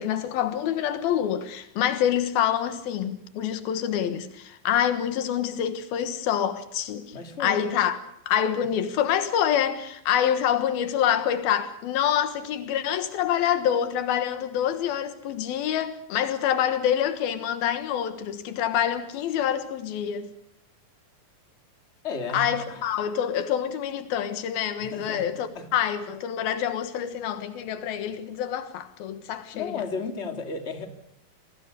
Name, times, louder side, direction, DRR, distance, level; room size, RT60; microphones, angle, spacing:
voice 1, 0.0-7.2 7.4-8.0 8.3-20.3 22.3-29.7, left 9 dB, 90° left, 3.3 m, -26 dB
voice 2, 7.1-7.7 22.0-22.9 24.8-25.3 25.5-25.7 29.5-30.9, left 4 dB, 20° left, 2.5 m, -33 dB
28.0 x 20.0 x 6.8 m
omnidirectional pair, 4.1 m